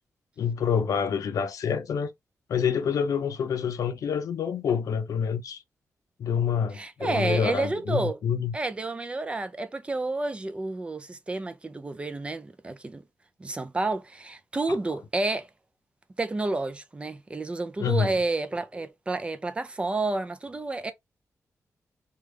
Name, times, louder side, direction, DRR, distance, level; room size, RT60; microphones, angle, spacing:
voice 1, 0.4-2.1 2.5-5.6 6.2-8.5 17.8-18.1, left 7 dB, 80° left, 0.5 m, -27 dB
voice 2, 6.7-8.2 8.5-13.0 13.4-15.5 16.2-20.9, right 2 dB, 20° right, 0.4 m, -30 dB
3.4 x 2.3 x 3.1 m
wide cardioid pair, 155°, 6 cm